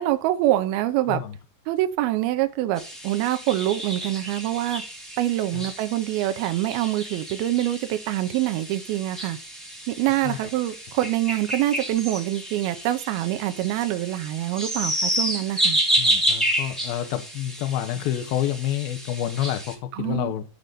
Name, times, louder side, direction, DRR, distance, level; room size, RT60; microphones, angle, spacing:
voice 1, 0.0-1.2 1.7-4.8 5.2-9.4 9.9-15.8 19.9-20.3, right 14 dB, 80° right, 2.4 m, -25 dB
sound 1, 2.7-19.7, right 1 dB, ahead, 1.1 m, -30 dB
voice 2, 16.0-20.4, left 11 dB, 75° left, 2.5 m, -28 dB
11.5 x 4.0 x 6.8 m
omnidirectional pair, 5.0 m